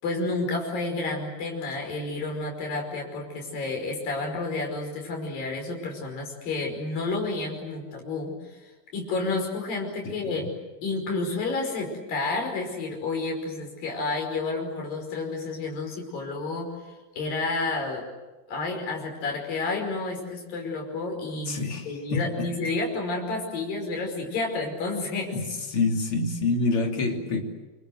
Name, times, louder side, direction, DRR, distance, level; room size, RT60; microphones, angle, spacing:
voice 1, 0.0-8.6 8.9-10.4 10.8-16.7 17.2-18.0 18.5-25.3, left 3 dB, 75° left, 2 dB, 7.1 m, -30 dB
voice 2, 10.0-10.5 21.5-22.5 25.3-25.5 25.7-27.4, left 3 dB, 40° left, 2 dB, 3.8 m, -27 dB
28.5 x 24.5 x 8.0 m, 1.2 s
omnidirectional pair, 4.0 m